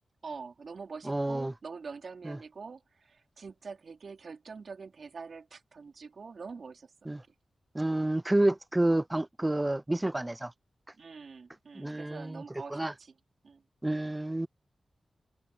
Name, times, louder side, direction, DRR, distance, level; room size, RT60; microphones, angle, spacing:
voice 1, 0.2-7.1 10.9-13.1 13.4-13.6, right 5 dB, 65° right, 4.1 m, -45 dB
voice 2, 1.1-1.5 2.2-2.4 7.1-7.2 7.7-10.5 11.7-12.4 12.7-12.9 13.8-14.5, right 1 dB, 15° right, 0.5 m, -29 dB
wide cardioid pair, 80°, 0 cm